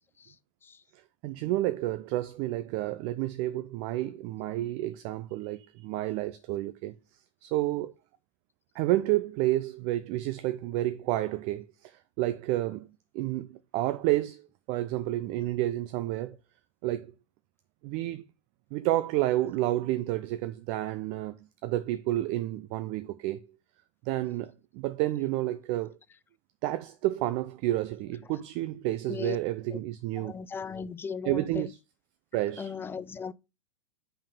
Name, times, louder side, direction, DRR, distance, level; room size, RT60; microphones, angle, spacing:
voice 1, 1.2-6.9 7.4-7.9 8.7-12.9 13.1-14.4 14.7-16.3 16.8-17.1 17.8-18.2 18.7-21.4 21.6-23.4 24.0-25.9 26.6-30.3 31.2-31.8 32.3-32.7, right 15 dB, 45° right, 0.5 m, -30 dB
voice 2, 30.2-31.7 32.6-33.3, left 6 dB, 15° left, 0.4 m, -36 dB
5.6 x 5.2 x 5.4 m
hypercardioid pair, 105°, 17 cm